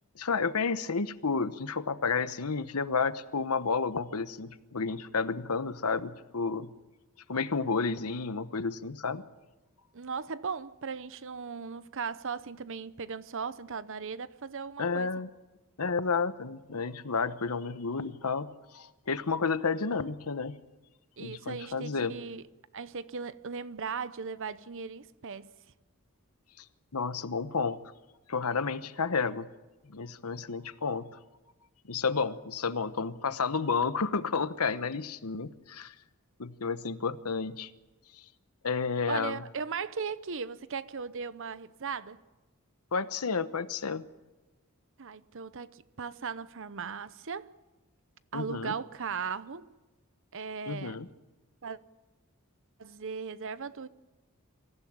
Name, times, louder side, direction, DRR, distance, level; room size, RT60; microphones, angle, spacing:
voice 1, 0.2-6.7 7.3-9.2 14.8-15.3 15.8-20.6 21.2-22.1 26.9-27.8 28.3-29.5 29.9-31.1 31.8-35.9 36.4-37.7 38.6-39.4 42.9-44.0 48.3-48.7 50.7-51.1, left 5 dB, 90° left, 1.0 m, -31 dB
voice 2, 9.9-15.1 21.2-22.4 22.7-25.5 39.1-42.2 45.0-47.5 48.3-49.7 50.3-51.0 51.6-51.8 52.8-53.9, right 5 dB, 60° right, 0.8 m, -37 dB
24.5 x 15.5 x 8.8 m
head